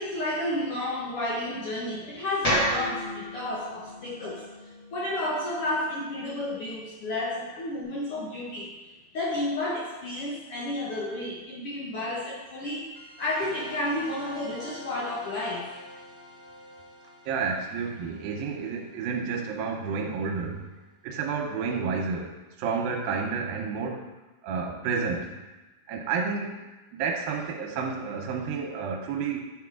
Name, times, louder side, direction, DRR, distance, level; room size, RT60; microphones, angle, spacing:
voice 1, 0.0-4.4 4.9-8.7 9.1-12.9 13.2-15.7, left 1 dB, 70° left, -5 dB, 1.3 m, -31 dB
sound 1, 2.4-6.6, equal, 25° left, 1.8 m, -32 dB
sound 2, 12.9-20.0, equal, 20° right, 0.6 m, -46 dB
voice 2, 17.3-20.6 21.0-22.3 22.6-24.1 24.4-25.4 25.9-26.6 26.9-29.5, right 5 dB, 85° right, 2 dB, 2.6 m, -30 dB
9.5 x 4.8 x 3.6 m, 1.2 s
omnidirectional pair, 4.2 m